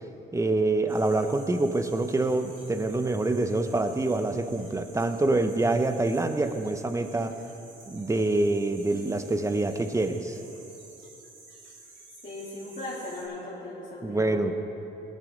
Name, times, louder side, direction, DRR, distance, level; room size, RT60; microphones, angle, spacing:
voice 1, 0.3-7.3 7.9-10.4 14.0-14.5, right 2 dB, 15° right, 8 dB, 0.8 m, -26 dB
sound 1, 0.9-13.2, right 3 dB, 75° right, 3.1 m, -51 dB
voice 2, 12.2-14.4, left 2 dB, 45° left, -10 dB, 3.1 m, -38 dB
18.5 x 11.0 x 3.8 m, 2.9 s
cardioid pair, 90°, 20 cm